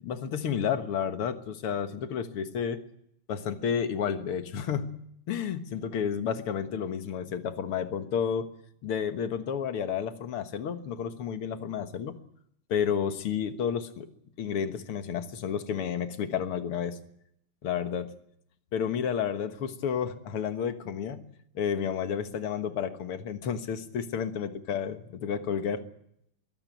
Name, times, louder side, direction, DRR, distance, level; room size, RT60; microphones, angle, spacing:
voice 1, 0.0-2.8 3.3-5.0 5.3-8.5 8.8-12.2 12.7-14.1 14.4-17.0 17.6-18.1 18.7-21.3 21.6-25.8, left 7 dB, 85° left, 10 dB, 2.4 m, -31 dB
22.5 x 16.5 x 9.1 m, 0.72 s
omnidirectional pair, 2.3 m